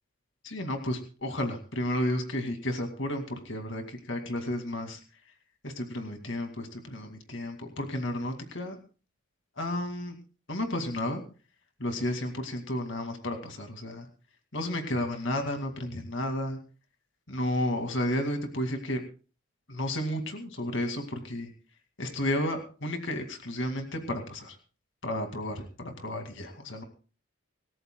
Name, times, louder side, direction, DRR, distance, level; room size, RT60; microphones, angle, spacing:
voice 1, 0.4-5.0 5.6-8.8 9.6-10.2 10.5-11.2 11.8-14.1 14.5-16.6 17.3-19.0 19.7-21.5 22.0-24.6 25.0-26.8, left 1 dB, 55° left, 4 dB, 2.3 m, -32 dB
26.0 x 14.0 x 2.3 m, 0.36 s
head